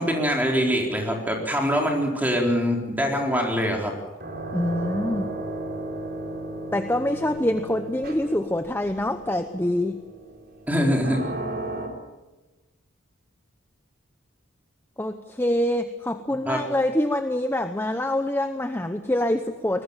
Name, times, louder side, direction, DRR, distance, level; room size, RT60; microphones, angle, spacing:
voice 1, 0.0-3.9 10.7-11.2 16.5-16.6, equal, 10° right, 0 dB, 4.2 m, -23 dB
sound 1, 4.1-11.9, right 2 dB, 50° right, 3.9 m, -35 dB
voice 2, 4.5-5.3 6.7-10.0 15.0-19.8, left 1 dB, 10° left, 8 dB, 0.8 m, -25 dB
23.5 x 20.0 x 7.3 m, 1.2 s
head